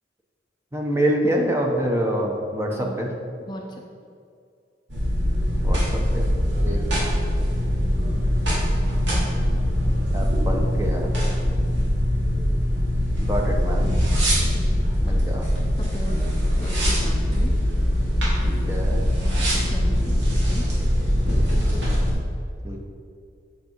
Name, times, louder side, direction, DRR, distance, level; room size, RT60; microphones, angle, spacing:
voice 1, 0.7-3.1 5.6-6.3 6.6-7.1 10.1-11.1 13.2-13.9 15.0-15.5 18.4-19.0 22.6-22.8, right 1 dB, 15° right, 0 dB, 1.0 m, -26 dB
voice 2, 2.7-3.0 3.4-3.8 14.5-14.8 15.1-15.3 15.8-16.2 16.6-17.5 19.2-20.7, equal, 25° left, 0 dB, 0.6 m, -37 dB
sound 1, 4.9-22.1, equal, 80° right, 2.3 m, -22 dB
8.1 x 6.7 x 4.6 m, 2.3 s
head